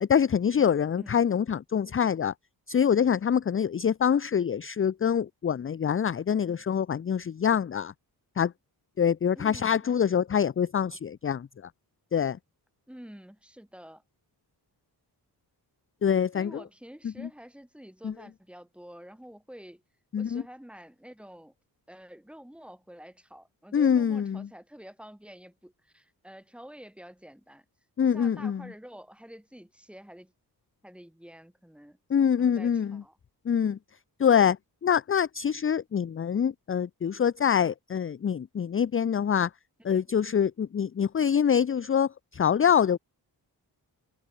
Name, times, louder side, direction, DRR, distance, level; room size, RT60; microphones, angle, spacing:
voice 1, 0.0-2.3 2.7-7.9 8.4-8.5 9.0-11.5 12.1-12.4 16.0-16.6 17.0-17.3 18.0-18.1 20.1-20.4 23.7-24.5 28.0-28.7 32.1-33.0 33.5-33.8 34.2-34.6 34.8-39.5 39.8-43.0, left 8 dB, 30° left, 0.5 m, -25 dB
voice 2, 9.3-9.8 12.9-14.0 16.3-19.8 20.2-21.5 21.9-27.6 28.0-30.3 30.8-32.0 32.4-33.2 39.9-40.0, equal, 5° right, 3.0 m, -48 dB
wide cardioid pair, 165°, 41 cm